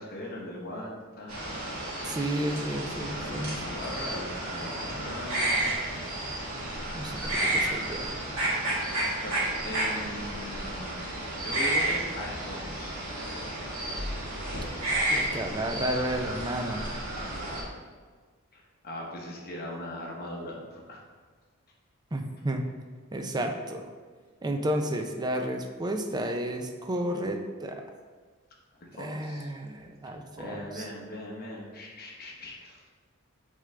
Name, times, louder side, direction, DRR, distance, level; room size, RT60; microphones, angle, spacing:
voice 1, 0.0-1.6 3.6-5.6 9.2-11.0 11.3-12.9 18.5-21.0 28.7-29.5 30.1-32.9, left 1 dB, 45° left, -2 dB, 1.1 m, -40 dB
sound 1, 1.3-17.6, right 1 dB, 80° right, 1.8 m, -31 dB
voice 2, 2.0-3.6 6.9-8.1 15.1-16.9 22.1-22.6 23.1-23.9 24.4-27.8 28.9-30.9, right 1 dB, 20° right, 4 dB, 0.4 m, -32 dB
7.9 x 3.8 x 3.3 m, 1.5 s
head